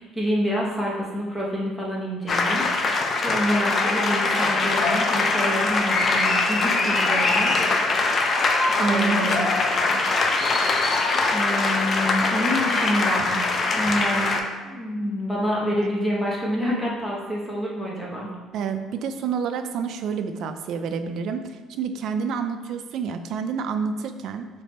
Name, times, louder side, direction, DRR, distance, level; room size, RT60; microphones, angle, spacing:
voice 1, 0.0-7.5 8.8-9.4 11.3-13.4 13.7-14.4 14.6-18.3, equal, 5° left, -4 dB, 0.8 m, -27 dB
sound 1, 2.3-14.4, left 3 dB, 30° left, 0.3 m, -22 dB
voice 2, 8.8-9.5 9.8-10.0 18.5-24.5, right 6 dB, 50° right, 7 dB, 0.3 m, -28 dB
3.4 x 3.2 x 4.1 m, 1.4 s
cardioid pair, 170°, 0 cm